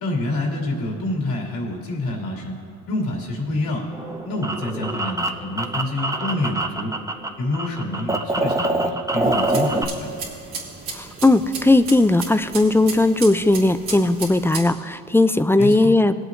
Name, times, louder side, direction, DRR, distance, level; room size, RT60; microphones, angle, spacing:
voice 1, 0.0-2.5 2.9-3.9 4.2-6.9 7.4-10.1 15.6-15.9, left 2 dB, 65° left, -1 dB, 2.6 m, -27 dB
sound 1, 3.9-7.3 7.5-9.8, right 2 dB, 10° right, 0.9 m, -24 dB
sound 2, 9.2-14.6, right 4 dB, 85° right, 2.4 m, -34 dB
voice 2, 10.9-16.2, left 2 dB, 5° left, 12 dB, 0.4 m, -17 dB
21.5 x 8.0 x 2.6 m, 2.4 s
supercardioid pair, 65°, 37 cm